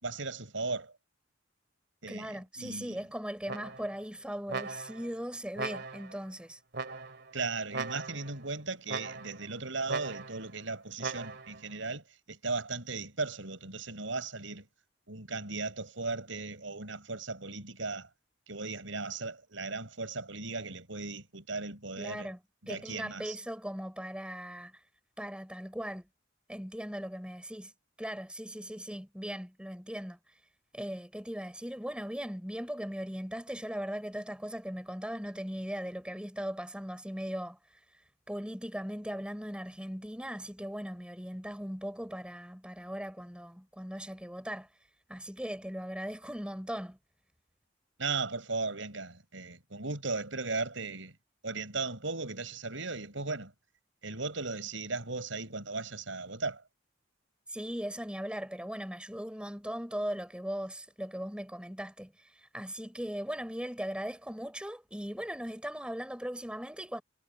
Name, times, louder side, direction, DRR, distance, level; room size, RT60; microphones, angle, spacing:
voice 1, 0.0-0.9 2.0-3.0 7.3-14.7 15.1-18.1 18.5-22.3 22.6-23.4 48.0-51.1 51.4-53.5 54.0-56.6, right 3 dB, 90° right, 5.8 m, -37 dB
voice 2, 2.1-6.6 22.0-22.4 22.7-24.8 25.2-26.1 26.5-27.7 28.0-30.2 30.7-37.6 38.3-44.7 45.1-47.0 57.5-67.0, equal, 5° right, 4.5 m, -39 dB
sound 1, 3.5-4.0 4.5-5.1 5.6-6.2 6.7-7.3 7.7-8.4 8.9-9.5 9.9-10.5 11.0-11.6, right 4 dB, 60° right, 2.5 m, -39 dB
head